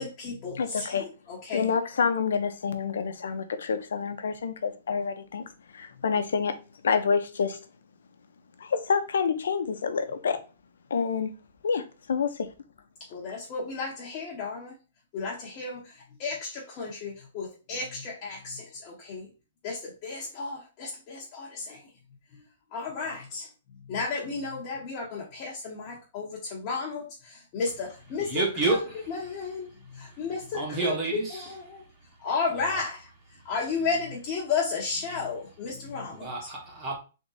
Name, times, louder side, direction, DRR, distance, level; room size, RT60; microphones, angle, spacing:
voice 1, 0.0-1.7 13.1-14.7 15.1-19.3 19.6-21.8 22.7-23.5 23.9-31.9 32.2-33.1 33.4-36.3, left 4 dB, 25° left, 0.9 m, -33 dB
voice 2, 0.6-1.1 1.5-5.4 5.7-6.6 6.8-7.6 8.6-10.4 10.9-11.3 11.6-12.5, left 6 dB, 85° left, 0.8 m, -27 dB
voice 3, 28.2-29.1 30.5-31.4 36.1-36.9, right 3 dB, 20° right, 1.1 m, -29 dB
3.7 x 3.5 x 4.0 m
hypercardioid pair, 175°, 0 cm